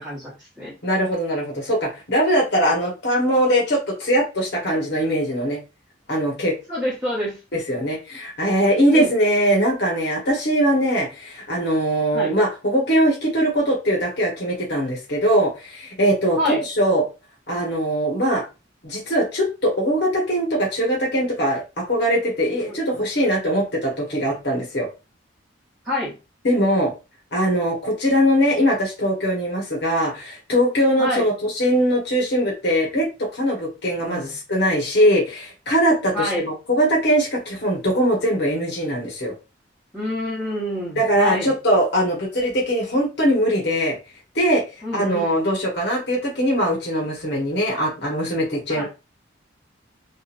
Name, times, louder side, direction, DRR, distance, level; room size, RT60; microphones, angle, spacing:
voice 1, 0.0-0.7 6.7-7.4 8.9-9.1 12.1-12.3 16.4-16.6 22.7-23.0 25.8-26.1 31.0-31.3 34.0-34.3 36.1-36.5 39.9-41.5 44.8-45.4 48.7-48.8, left 1 dB, 5° right, -8 dB, 0.9 m, -27 dB
voice 2, 0.8-5.6 6.1-6.5 7.5-17.0 17.5-18.4 18.8-24.9 26.4-26.9 27.3-33.1 33.3-39.3 41.0-44.0 44.3-44.6 44.9-48.8, equal, 60° left, -3 dB, 1.1 m, -21 dB
2.8 x 2.5 x 2.4 m, 0.29 s
head